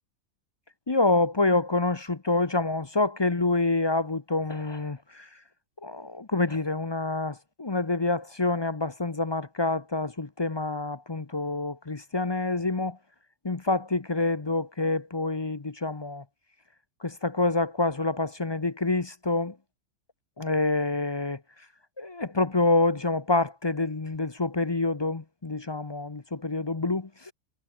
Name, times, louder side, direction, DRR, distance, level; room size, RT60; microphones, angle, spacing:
voice 1, 0.9-5.3 5.8-13.0 13.4-16.2 17.0-19.5 20.4-21.4 22.0-27.1, left 2 dB, 25° left, 0.7 m, -27 dB
omnidirectional pair, 1.5 m